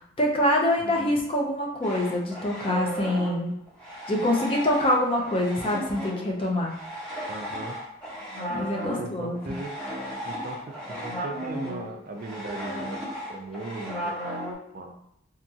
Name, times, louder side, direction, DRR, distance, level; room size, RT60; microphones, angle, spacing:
voice 1, 0.2-3.5 4.1-6.7 8.5-9.6, left 1 dB, 30° left, 0 dB, 0.4 m, -25 dB
voice 2, 0.8-1.2 7.3-7.8 8.9-9.7 10.2-13.0 13.3-14.2 14.7-14.9, right 2 dB, 45° right, 3 dB, 0.3 m, -38 dB
sound 1, 1.8-14.5, equal, 5° left, 0.8 m, -35 dB
2.8 x 2.3 x 2.7 m, 0.76 s
head